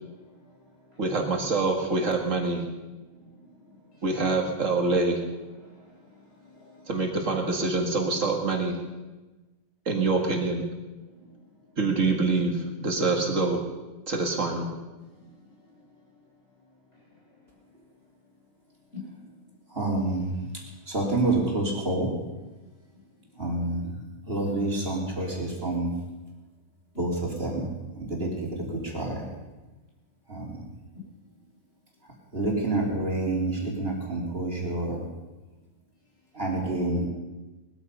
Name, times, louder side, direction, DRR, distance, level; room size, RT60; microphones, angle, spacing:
voice 1, 1.0-2.6 4.0-5.2 6.9-8.8 9.9-10.7 11.8-13.6 14.1-14.7, right 3 dB, 65° right, 2 dB, 2.3 m, -25 dB
voice 2, 3.1-3.6 4.0-4.1 5.6-6.9 11.2-11.3 18.9-19.0, left 7 dB, 45° left, -3 dB, 5.9 m, -49 dB
voice 3, 19.7-20.5 20.9-22.1 23.4-24.0 24.3-25.9 27.0-27.7 27.9-29.3 30.3-30.6 32.3-35.1 36.3-37.1, right 2 dB, 45° right, -2 dB, 3.5 m, -28 dB
19.5 x 13.5 x 5.5 m, 1.1 s
omnidirectional pair, 1.4 m